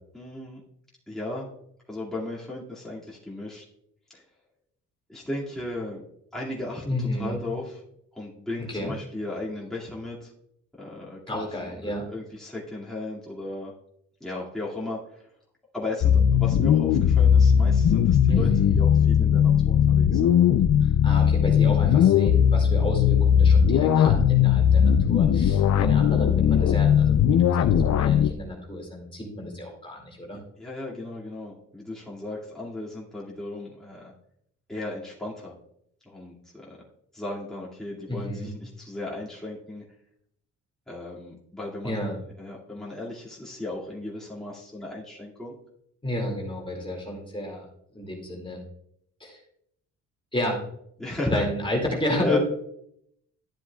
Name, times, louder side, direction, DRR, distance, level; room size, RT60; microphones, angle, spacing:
voice 1, 0.1-0.6 1.1-1.5 1.9-3.6 4.1-4.2 5.1-6.0 6.3-7.8 8.1-10.3 10.7-13.7 14.2-15.3 15.7-18.5 18.7-20.3 30.3-34.1 34.7-35.6 36.0-36.9 37.1-39.8 40.9-42.0 42.4-45.6 51.0-51.4 52.2-52.4, left 2 dB, ahead, -6 dB, 2.3 m, -35 dB
voice 2, 6.9-7.4 8.7-8.9 11.3-12.1 18.3-18.8 20.8-30.4 38.1-38.5 41.8-42.2 46.0-47.7 47.9-48.6 49.2-49.4 50.3-50.6 51.2-52.4, left 1 dB, 15° left, 0 dB, 2.4 m, -31 dB
sound 1, 16.0-28.3, left 8 dB, 60° left, 0.6 m, -19 dB
12.0 x 7.5 x 2.4 m, 0.72 s
cardioid pair, 90°, 30 cm